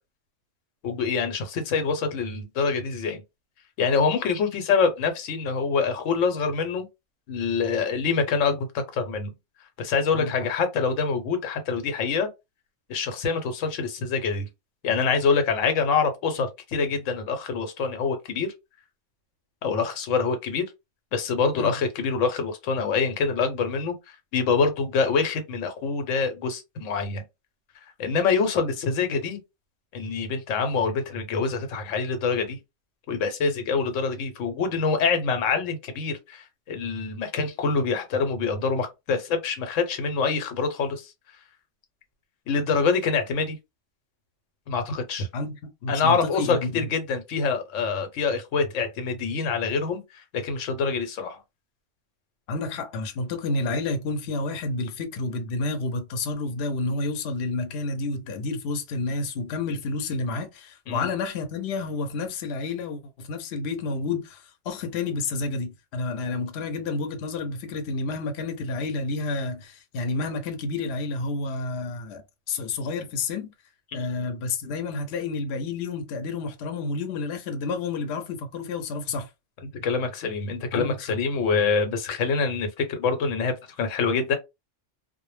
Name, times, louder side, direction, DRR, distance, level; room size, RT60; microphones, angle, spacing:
voice 1, 0.8-3.2 3.8-6.9 7.3-9.3 9.8-12.3 12.9-14.5 14.8-18.5 19.6-20.7 21.1-23.9 24.3-27.2 28.0-29.4 29.9-32.6 33.1-41.1 42.5-43.6 44.7-45.3 45.9-51.4 60.9-61.1 73.9-74.0 79.6-84.4, left 5 dB, 90° left, 1.0 m, -25 dB
voice 2, 45.3-46.9 52.5-72.2 72.5-73.5 73.9-79.3 80.7-81.2, left 3 dB, 65° left, 0.8 m, -30 dB
2.1 x 2.0 x 3.1 m
omnidirectional pair, 1.3 m